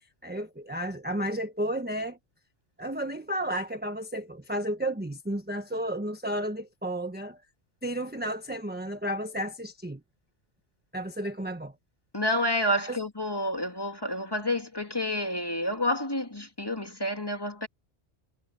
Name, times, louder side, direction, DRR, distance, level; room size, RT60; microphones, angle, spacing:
voice 1, 0.2-2.2 2.8-7.4 7.8-10.0 10.9-11.7 12.8-13.0, right 1 dB, 10° right, 1.1 m, -32 dB
voice 2, 12.1-17.7, left 1 dB, 20° left, 2.3 m, -29 dB
omnidirectional pair, 1.1 m